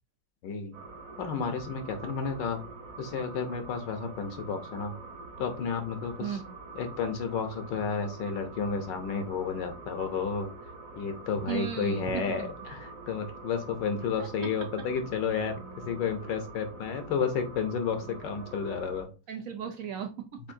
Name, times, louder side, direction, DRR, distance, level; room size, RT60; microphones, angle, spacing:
voice 1, 0.4-0.8 1.2-2.6 3.0-4.9 5.4-6.4 6.7-10.5 10.9-19.1, left 6 dB, 70° left, 7 dB, 1.5 m, -32 dB
sound 1, 0.7-19.0, right 3 dB, 50° right, 1.3 m, -45 dB
voice 2, 6.2-6.6 11.4-12.5 19.3-20.4, right 9 dB, 75° right, 6 dB, 0.7 m, -36 dB
7.2 x 2.6 x 2.6 m, 0.31 s
omnidirectional pair, 2.0 m